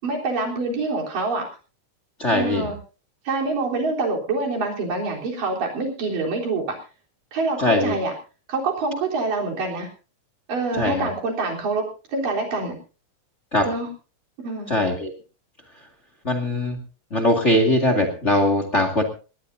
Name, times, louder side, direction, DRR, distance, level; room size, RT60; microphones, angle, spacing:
voice 1, 0.0-1.5 2.3-2.8 3.3-6.8 7.3-8.1 8.5-9.9 10.5-11.9 12.1-12.8 13.6-13.9 14.4-14.8, right 3 dB, 90° right, 0 dB, 5.4 m, -26 dB
voice 2, 2.2-2.7 7.6-7.9 10.8-11.1 13.5-13.7 14.7-15.1 16.2-16.8 17.1-19.0, left 1 dB, 25° left, 5 dB, 2.0 m, -20 dB
19.5 x 19.0 x 2.7 m, 0.35 s
omnidirectional pair, 3.7 m